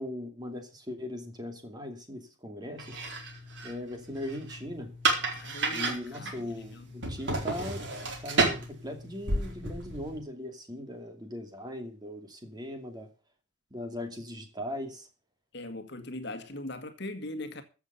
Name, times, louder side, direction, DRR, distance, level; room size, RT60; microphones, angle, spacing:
voice 1, 0.0-3.0 3.6-4.9 5.7-7.8 8.2-13.1 13.7-15.1, left 1 dB, 20° right, 2.5 m, -39 dB
sound 1, 2.8-10.2, right 2 dB, 55° right, 4.3 m, -32 dB
voice 2, 5.3-7.0 15.5-17.6, left 1 dB, 50° left, 1.9 m, -40 dB
15.0 x 7.2 x 6.9 m
head